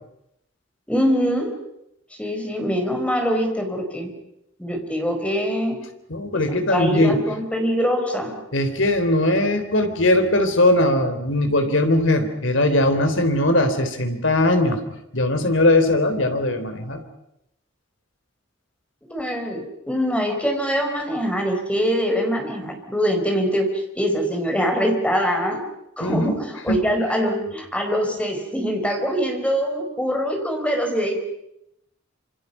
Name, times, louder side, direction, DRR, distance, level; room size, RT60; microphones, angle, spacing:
voice 1, 0.9-1.5 2.2-4.1 4.6-5.8 6.3-8.3 19.0-25.6 26.0-31.2, equal, 5° left, 3 dB, 4.6 m, -23 dB
voice 2, 6.1-7.2 8.5-14.8 15.1-17.0 26.0-26.4 26.7-26.8, left 1 dB, 70° left, 7 dB, 3.6 m, -20 dB
27.5 x 27.0 x 5.6 m, 0.82 s
head